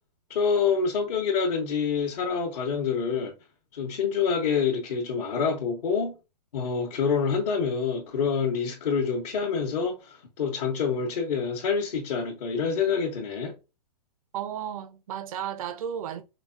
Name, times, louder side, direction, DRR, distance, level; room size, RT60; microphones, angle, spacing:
voice 1, 0.3-3.3 3.7-6.1 6.5-13.5, left 6 dB, 65° left, 1.3 m, -27 dB
voice 2, 14.3-16.2, right 9 dB, 55° right, 0.8 m, -33 dB
5.1 x 2.2 x 2.6 m
hypercardioid pair, 130°, 21 cm